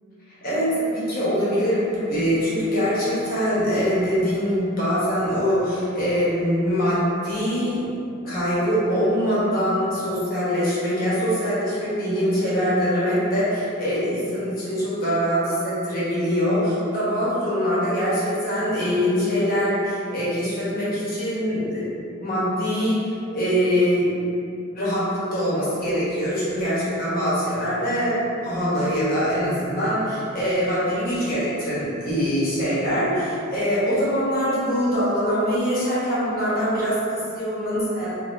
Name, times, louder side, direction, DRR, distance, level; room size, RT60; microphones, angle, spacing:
voice 1, 0.4-7.8 8.2-21.8 22.2-24.1 24.7-38.1, equal, 45° left, -9 dB, 1.2 m, -23 dB
4.2 x 2.8 x 2.7 m, 2.6 s
head